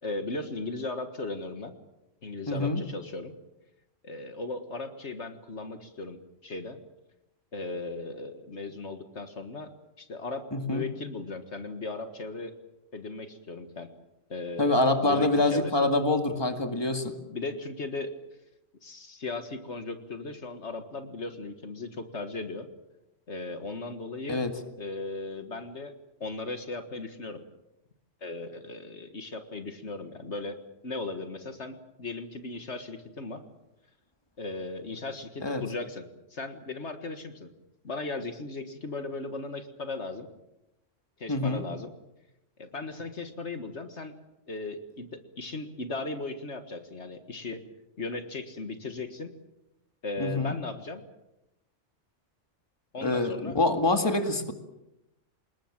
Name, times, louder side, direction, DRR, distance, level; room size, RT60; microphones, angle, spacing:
voice 1, 0.0-1.7 2.2-3.3 4.0-6.8 7.5-9.7 10.0-12.5 12.9-13.9 14.3-15.9 17.3-18.1 18.8-22.7 23.3-24.4 24.8-25.9 26.2-27.4 28.2-30.6 30.8-33.4 34.4-36.0 36.3-37.5 37.8-40.3 41.2-41.9 42.6-44.1 44.5-47.6 48.0-49.3 50.0-51.0 52.9-53.6, left 3 dB, 65° left, 7 dB, 2.0 m, -37 dB
voice 2, 2.5-2.8 10.5-10.9 14.6-17.1 24.3-24.5 35.4-35.6 41.3-41.6 50.2-50.6 53.0-54.5, left 2 dB, 20° left, 6 dB, 2.1 m, -26 dB
26.0 x 21.0 x 7.5 m, 0.91 s
omnidirectional pair, 1.3 m